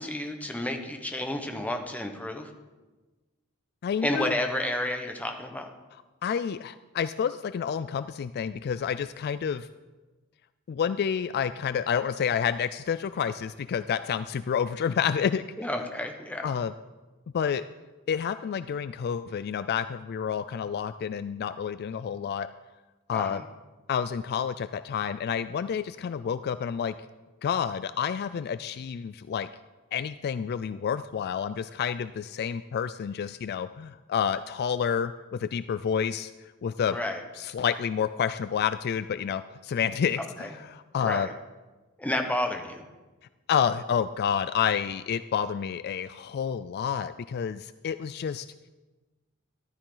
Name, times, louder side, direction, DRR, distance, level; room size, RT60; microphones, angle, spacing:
voice 1, 0.0-2.5 4.0-5.7 15.6-16.5 23.1-23.4 36.9-37.2 40.4-40.5 41.0-41.3 42.0-42.9, left 1 dB, 5° left, 4 dB, 1.1 m, -31 dB
voice 2, 3.8-4.3 6.2-9.7 10.7-15.4 16.4-16.7 17.3-17.6 18.1-22.5 23.1-23.4 23.9-26.9 27.4-29.5 29.9-36.3 36.6-37.0 37.4-41.3 43.5-48.5, left 7 dB, 50° left, 13 dB, 0.3 m, -29 dB
14.0 x 12.0 x 3.9 m, 1.2 s
head